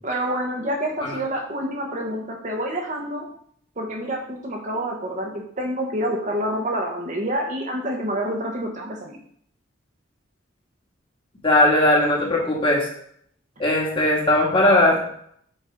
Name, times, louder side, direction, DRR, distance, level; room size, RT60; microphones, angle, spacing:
voice 1, 0.0-3.3 3.8-9.2, right 1 dB, 40° right, 1 dB, 1.1 m, -27 dB
voice 2, 11.4-12.8 13.6-15.0, left 1 dB, 25° left, -3 dB, 1.8 m, -18 dB
6.6 x 4.2 x 5.1 m, 0.65 s
head